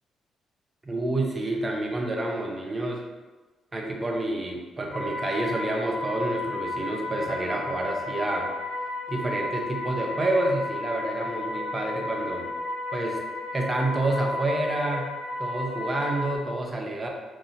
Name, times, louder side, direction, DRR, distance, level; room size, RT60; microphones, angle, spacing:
voice 1, 0.8-3.0 3.7-8.5 9.1-12.5 12.9-13.2 13.5-15.1 15.4-17.1, right 2 dB, 25° right, 1 dB, 0.4 m, -28 dB
sound 1, 4.9-16.4, left 2 dB, 50° left, 1.0 m, -33 dB
2.7 x 2.1 x 2.6 m, 1.3 s
cardioid pair, 90°, 0 cm